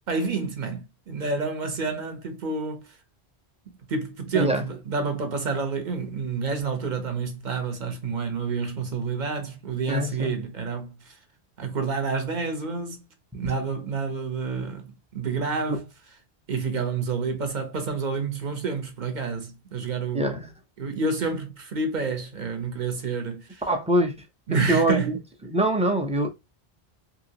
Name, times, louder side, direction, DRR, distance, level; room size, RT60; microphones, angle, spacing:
voice 1, 0.1-2.9 3.9-11.1 11.6-13.1 13.3-15.8 16.5-20.4 20.8-23.6 24.5-25.1, right 4 dB, 50° right, 0.8 m, -29 dB
voice 2, 9.9-10.3 15.7-15.8 20.1-20.5 23.7-24.1 24.5-25.2 25.5-26.3, right 1 dB, 10° right, 0.4 m, -24 dB
2.8 x 2.8 x 2.8 m
omnidirectional pair, 1.1 m